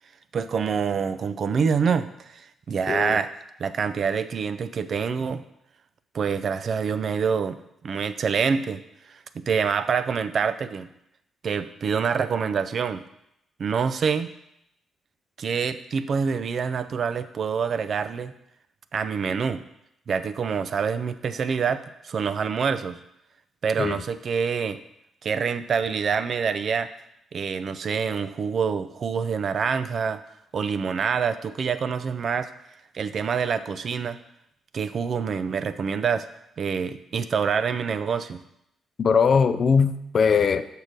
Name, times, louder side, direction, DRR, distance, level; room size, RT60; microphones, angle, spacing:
voice 1, 0.3-3.3 3.6-5.4 6.1-7.6 7.8-8.8 9.1-10.9 11.4-13.1 13.6-14.3 15.4-18.3 18.9-19.6 20.1-23.0 23.6-24.8 25.2-26.9 27.3-30.2 30.5-32.5 32.9-34.2 34.7-36.3 36.6-38.4, right 6 dB, 55° right, 12 dB, 0.5 m, -26 dB
voice 2, 2.9-3.2 23.8-24.0 39.0-40.6, left 6 dB, 55° left, 11 dB, 0.5 m, -20 dB
6.5 x 4.6 x 5.0 m, 0.79 s
hypercardioid pair, 40°, 0 cm